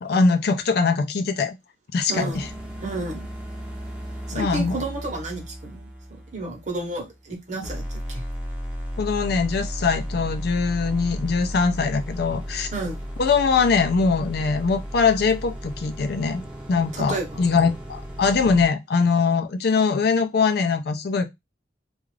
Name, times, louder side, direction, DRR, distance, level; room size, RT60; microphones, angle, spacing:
voice 1, 0.0-1.6 1.9-2.5 4.3-4.8 9.0-12.7 13.2-16.4 16.7-21.3, left 4 dB, 60° left, 0.4 m, -22 dB
voice 2, 2.1-2.4 2.8-3.2 4.3-8.2 12.7-13.0 16.9-17.4, right 2 dB, 40° right, 0.9 m, -32 dB
Digital Noise Feedback, 2.3-7.3 7.6-18.7, equal, 5° right, 0.6 m, -34 dB
2.4 x 2.4 x 3.2 m
head